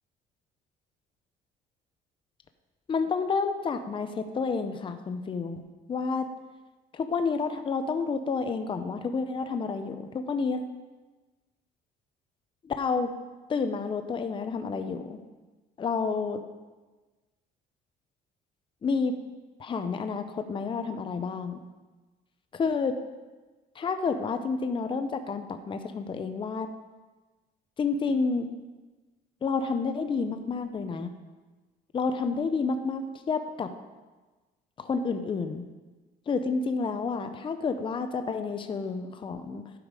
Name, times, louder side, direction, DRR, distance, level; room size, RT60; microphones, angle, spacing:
voice 1, 2.9-5.6 5.9-6.3 6.9-10.6 12.6-13.1 13.5-15.2 15.8-16.4 18.8-19.2 19.6-21.6 22.5-22.9 23.8-26.7 27.8-28.5 29.4-31.1 31.9-33.7 34.8-35.6 36.3-39.6, left 4 dB, 30° left, 8 dB, 0.7 m, -29 dB
12.0 x 5.3 x 4.8 m, 1.2 s
cardioid pair, 110°, 17 cm